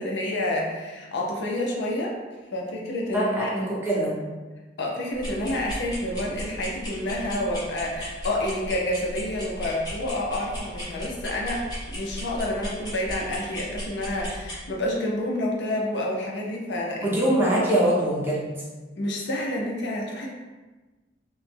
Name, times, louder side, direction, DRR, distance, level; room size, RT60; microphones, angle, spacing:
voice 1, 0.0-2.2 2.5-3.5 4.8-17.2 19.0-20.3, left 1 dB, 65° left, -1 dB, 0.5 m, -29 dB
voice 2, 3.1-4.2 17.0-18.4, right 1 dB, 10° right, -7 dB, 0.7 m, -23 dB
sound 1, 5.1-14.6, equal, 20° left, 0.9 m, -36 dB
3.0 x 2.1 x 3.3 m, 1.2 s
head